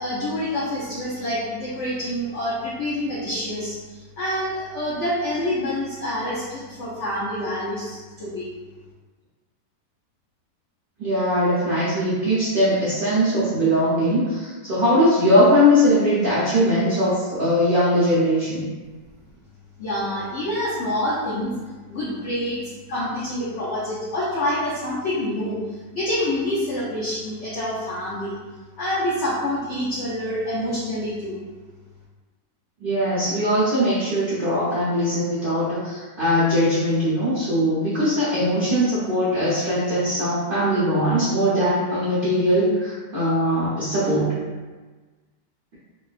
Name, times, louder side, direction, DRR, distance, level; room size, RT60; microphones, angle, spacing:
voice 1, 0.0-8.5 19.8-21.5 21.9-22.6 22.9-25.6 25.9-28.4 28.8-31.4, left 1 dB, 75° left, -8 dB, 0.6 m, -27 dB
voice 2, 11.0-18.7 32.8-44.3, equal, 70° right, -10 dB, 0.5 m, -20 dB
3.2 x 2.2 x 2.4 m, 1.3 s
omnidirectional pair, 1.9 m